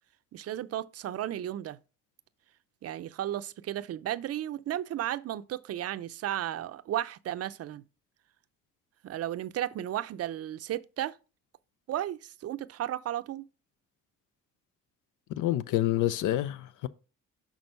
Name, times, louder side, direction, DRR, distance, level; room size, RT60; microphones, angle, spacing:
voice 1, 0.3-1.8 2.8-7.8 9.0-11.2 11.9-13.5, right 12 dB, 55° right, 0.5 m, -34 dB
voice 2, 15.4-16.9, left 14 dB, 85° left, 0.6 m, -28 dB
6.1 x 3.9 x 5.3 m
cardioid pair, 90°, 30 cm